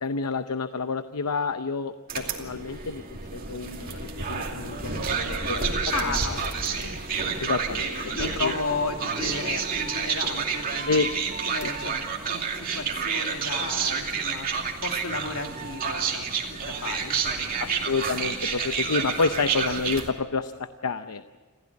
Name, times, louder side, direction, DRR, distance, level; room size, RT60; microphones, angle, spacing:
voice 1, 0.0-5.7 6.0-6.4 7.4-8.1 8.4-8.5 10.9-11.1 11.6-11.9 17.6-21.4, left 4 dB, 85° left, 10 dB, 0.7 m, -29 dB
sound 1, 2.1-20.1, right 5 dB, 40° right, 2.5 m, -29 dB
voice 2, 5.9-7.5 7.9-11.0 11.5-17.8, left 3 dB, 70° left, 3 dB, 2.7 m, -34 dB
27.5 x 15.5 x 8.6 m, 1.4 s
head